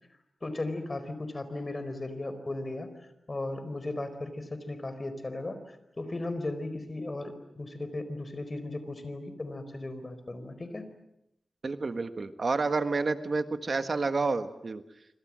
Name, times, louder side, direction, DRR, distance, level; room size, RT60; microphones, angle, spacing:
voice 1, 0.4-10.9, left 2 dB, 35° left, 10 dB, 4.4 m, -36 dB
voice 2, 11.6-14.8, right 3 dB, 55° right, 9 dB, 1.5 m, -29 dB
27.0 x 25.5 x 7.6 m, 0.80 s
wide cardioid pair, 90°, 0 cm